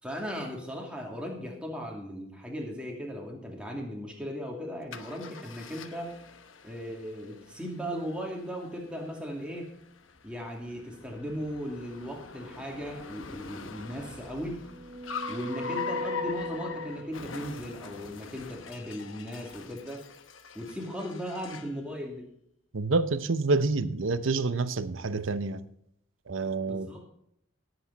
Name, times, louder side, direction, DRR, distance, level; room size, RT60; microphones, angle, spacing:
voice 1, 0.0-6.2 6.6-9.7 10.2-14.7 15.3-20.0 20.5-22.3 26.6-27.0, equal, 5° right, 2.6 m, -37 dB
Car, 4.9-21.8, left 6 dB, 85° left, 1.0 m, -43 dB
sound 1, 14.5-17.4, left 1 dB, 35° right, 0.5 m, -38 dB
voice 2, 22.7-25.6 26.3-27.0, right 3 dB, 90° right, 0.8 m, -28 dB
17.5 x 8.1 x 4.1 m
head